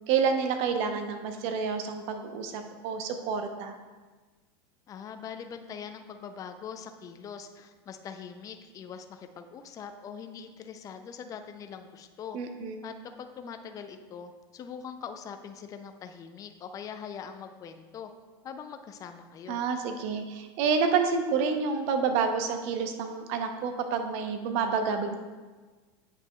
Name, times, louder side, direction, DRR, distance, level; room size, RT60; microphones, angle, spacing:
voice 1, 0.1-3.8 12.3-12.8 19.5-25.2, right 5 dB, 55° right, 6 dB, 0.7 m, -28 dB
voice 2, 4.9-12.4 12.8-18.1 18.4-19.6, left 7 dB, 25° left, 7 dB, 0.4 m, -42 dB
8.5 x 5.7 x 2.3 m, 1.3 s
supercardioid pair, 115°, 13 cm